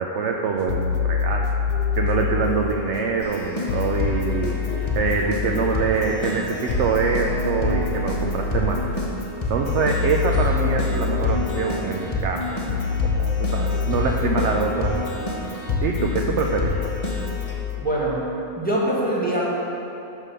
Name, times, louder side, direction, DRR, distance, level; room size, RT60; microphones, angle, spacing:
voice 1, 0.0-1.5 2.0-8.9 9.5-15.3 15.8-16.9, right 5 dB, 60° right, 1 dB, 0.8 m, -25 dB
sound 1, 0.6-17.8, left 6 dB, 65° left, 0.9 m, -27 dB
Keyboard (musical), 3.2-17.5, left 1 dB, 30° left, 0.9 m, -29 dB
voice 2, 17.8-18.3 18.6-19.5, right 1 dB, 5° left, -6 dB, 1.6 m, -23 dB
11.5 x 3.8 x 6.7 m, 2.9 s
omnidirectional pair, 1.6 m